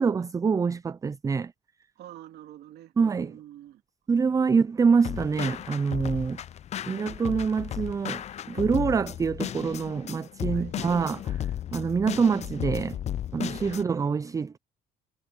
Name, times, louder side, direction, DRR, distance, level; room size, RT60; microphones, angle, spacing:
voice 1, 0.0-1.5 3.0-3.3 4.1-6.4 6.9-13.0 13.3-14.6, right 5 dB, 20° right, 0.4 m, -26 dB
voice 2, 2.0-3.8 10.5-10.8 13.6-13.8, right 13 dB, 75° right, 2.8 m, -47 dB
sound 1, 5.0-13.8, left 10 dB, 40° left, 0.5 m, -34 dB
cardioid pair, 110°, 17 cm